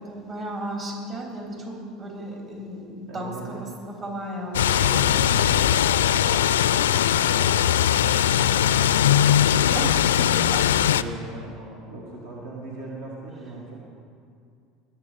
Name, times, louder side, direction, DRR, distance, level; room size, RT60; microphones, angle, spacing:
voice 1, 0.0-5.4 9.7-10.6, right 1 dB, 35° right, 0 dB, 3.4 m, -35 dB
voice 2, 3.1-3.7 4.7-9.5 10.3-13.8, right 2 dB, 65° right, -3 dB, 1.9 m, -39 dB
sound 1, 4.5-11.0, left 10 dB, 75° left, 0.3 m, -20 dB
20.5 x 7.7 x 5.2 m, 2.3 s
figure-of-eight pair, 70°, 0 cm